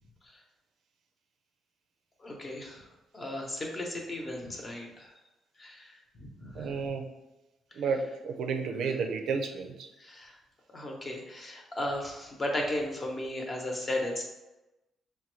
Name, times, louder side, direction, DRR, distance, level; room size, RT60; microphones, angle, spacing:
voice 1, 2.2-2.8 3.1-5.1 5.6-6.7 10.0-10.4 10.7-14.2, left 1 dB, 30° left, 0 dB, 0.9 m, -35 dB
voice 2, 6.5-7.0 7.8-9.9, right 5 dB, 75° right, 4 dB, 0.5 m, -31 dB
5.5 x 2.2 x 3.1 m, 1.0 s
cardioid pair, 90°, 0 cm